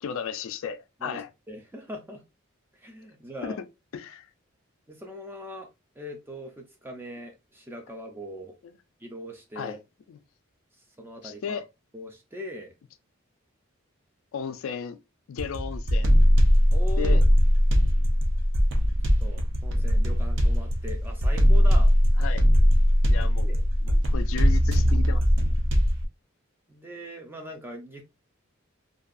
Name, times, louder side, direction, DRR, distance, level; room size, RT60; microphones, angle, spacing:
voice 1, 0.0-1.3 3.4-3.7 3.9-4.3 9.6-9.8 10.1-10.2 11.2-11.7 14.3-15.0 15.3-16.1 17.0-17.2 22.2-22.4 23.1-23.5 23.8-25.2, left 7 dB, 75° left, 0.3 m, -34 dB
voice 2, 1.5-2.2 2.7-3.6 4.9-5.7 6.0-8.5 9.0-9.8 11.0-11.6 11.9-12.7 16.7-17.2 19.2-21.9 23.2-23.6 26.7-28.0, equal, 10° right, 0.4 m, -40 dB
sound 1, 15.4-26.0, equal, 60° right, 0.5 m, -20 dB
2.6 x 2.3 x 2.4 m
head